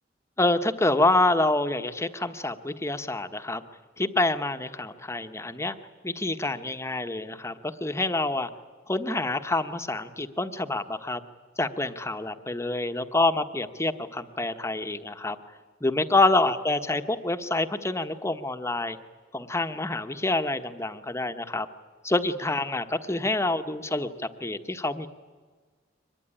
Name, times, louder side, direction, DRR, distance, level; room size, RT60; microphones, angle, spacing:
voice 1, 0.4-3.6 4.0-5.8 6.0-8.5 8.9-11.2 11.6-15.4 15.8-19.0 19.3-21.7 22.0-25.1, left 2 dB, 15° left, 8 dB, 1.1 m, -27 dB
24.0 x 20.5 x 10.0 m, 1.5 s
head